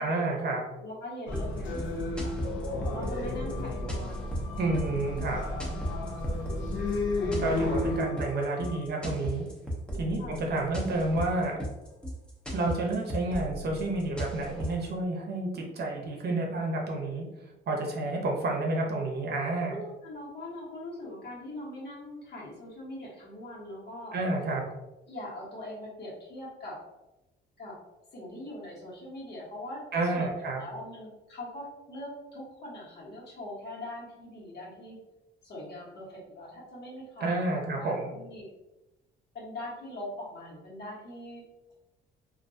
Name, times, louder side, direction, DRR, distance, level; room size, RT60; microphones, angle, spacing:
voice 1, 0.0-0.6 4.6-5.4 7.4-9.4 9.9-11.6 12.5-17.2 17.7-19.8 24.1-24.6 29.9-30.6 37.2-38.1, right 2 dB, 55° right, 0 dB, 0.7 m, -30 dB
voice 2, 0.8-1.9 2.2-2.3 2.9-4.4 6.2-6.5 10.2-10.4 19.7-24.2 25.1-26.8 27.6-27.8 28.1-35.0 35.4-38.5 39.3-41.4, left 1 dB, 55° left, -5 dB, 1.2 m, -42 dB
sound 1, 1.3-8.1, left 2 dB, 75° left, 0.6 m, -32 dB
sound 2, 1.3-14.9, equal, 5° left, 0.6 m, -36 dB
sound 3, 2.8-8.8, left 7 dB, 30° left, 1.2 m, -50 dB
2.5 x 2.2 x 2.6 m, 1.0 s
cardioid pair, 90°, 20 cm